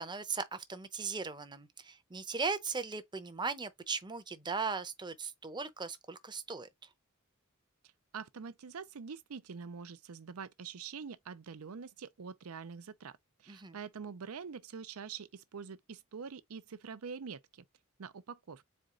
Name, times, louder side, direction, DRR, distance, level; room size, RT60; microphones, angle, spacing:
voice 1, 0.0-6.7 13.5-13.8, right 4 dB, 20° right, 0.7 m, -38 dB
voice 2, 8.1-17.6 18.0-18.7, right 6 dB, 85° right, 0.6 m, -45 dB
4.4 x 2.4 x 3.7 m
head